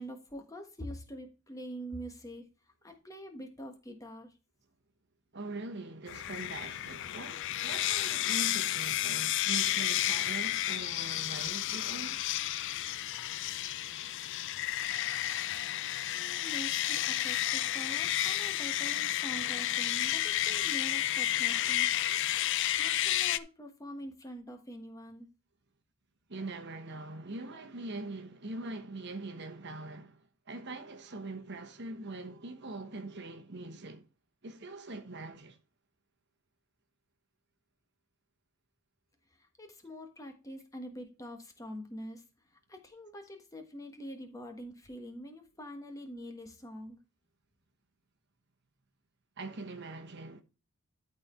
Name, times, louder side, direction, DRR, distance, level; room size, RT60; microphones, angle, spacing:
voice 1, 0.0-2.5 2.8-4.3 16.1-21.9 22.8-25.3 39.4-42.2 42.7-47.0, equal, 15° left, 1.3 m, -45 dB
voice 2, 5.3-12.3 26.3-34.0 34.4-35.6 49.4-50.4, right 2 dB, 50° right, 1.1 m, -42 dB
sound 1, 6.1-23.4, left 13 dB, 55° left, 0.4 m, -31 dB
12.0 x 4.4 x 4.3 m
head